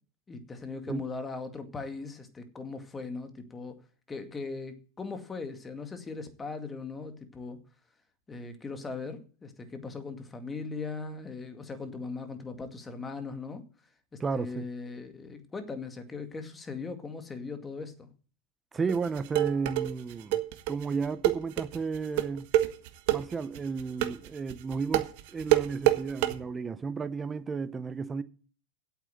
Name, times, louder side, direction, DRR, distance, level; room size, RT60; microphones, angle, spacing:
voice 1, 0.3-3.8 4.1-7.6 8.3-13.6 14.1-18.1, left 4 dB, 15° left, 2.1 m, -39 dB
voice 2, 14.2-14.7 18.7-20.4 20.7-22.5 23.1-28.2, right 5 dB, 20° right, 0.8 m, -33 dB
sound 1, 18.9-26.3, right 15 dB, 60° right, 1.5 m, -26 dB
8.4 x 8.3 x 7.8 m
hypercardioid pair, 105°, 0 cm